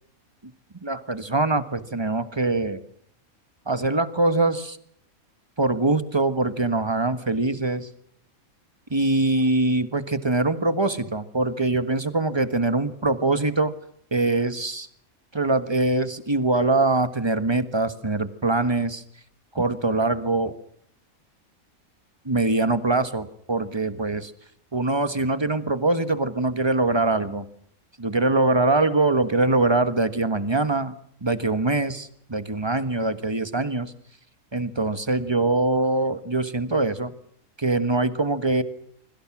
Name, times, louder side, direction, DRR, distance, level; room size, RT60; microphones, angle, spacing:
voice 1, 0.8-2.8 3.7-4.8 5.6-7.9 8.9-13.7 14.1-14.9 15.3-19.0 19.5-20.5 22.2-24.3 24.7-27.4 28.0-30.9 31.2-33.9 34.5-37.1 37.6-38.6, right 2 dB, 20° right, 12 dB, 1.4 m, -23 dB
25.5 x 24.5 x 6.1 m, 0.65 s
omnidirectional pair, 1.5 m